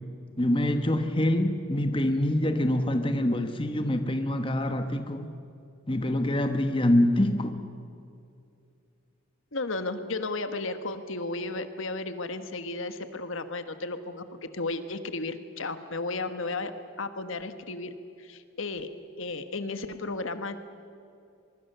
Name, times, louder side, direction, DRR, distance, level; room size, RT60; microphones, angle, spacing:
voice 1, 0.4-5.3 5.9-7.6, left 1 dB, 25° left, 7 dB, 1.1 m, -25 dB
voice 2, 9.5-16.7 17.0-18.9 19.2-20.6, left 3 dB, 65° left, 10 dB, 1.4 m, -34 dB
24.0 x 23.5 x 6.8 m, 2.6 s
head